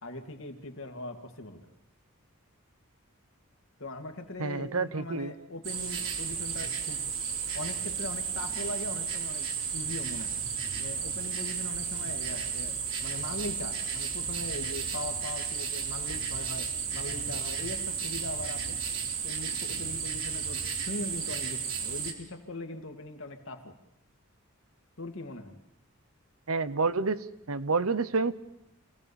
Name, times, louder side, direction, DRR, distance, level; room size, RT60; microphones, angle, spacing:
voice 1, 0.0-1.7 3.8-7.1 7.5-10.4 10.8-18.8 19.2-23.8 25.0-25.6, left 2 dB, 65° left, 4 dB, 2.4 m, -40 dB
voice 2, 4.4-5.3 26.5-28.3, right 4 dB, 85° right, 14 dB, 1.0 m, -29 dB
sound 1, 5.6-22.1, right 6 dB, 70° right, 3.5 m, -33 dB
27.5 x 17.5 x 7.1 m, 0.86 s
head